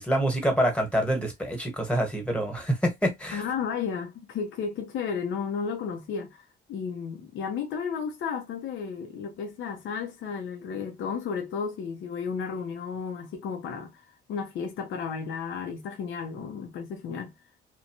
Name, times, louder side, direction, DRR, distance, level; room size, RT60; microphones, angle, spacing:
voice 1, 0.0-3.4, right 1 dB, 5° left, 1.2 m, -26 dB
voice 2, 3.3-14.0 14.3-17.3, left 6 dB, 75° left, 0.7 m, -33 dB
2.7 x 2.2 x 2.9 m
cardioid pair, 90°, 20 cm